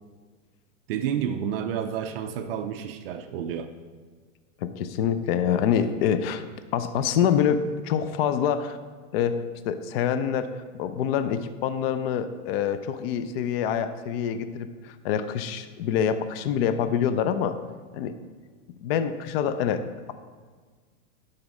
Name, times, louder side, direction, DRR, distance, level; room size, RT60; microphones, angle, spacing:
voice 1, 0.9-3.7, right 8 dB, 45° right, 7 dB, 0.5 m, -30 dB
voice 2, 4.6-6.5 6.7-8.8 9.1-17.6 17.9-18.2 18.8-19.8, left 8 dB, 45° left, 10 dB, 0.5 m, -26 dB
11.5 x 4.3 x 4.8 m, 1.5 s
supercardioid pair, 145°, 41 cm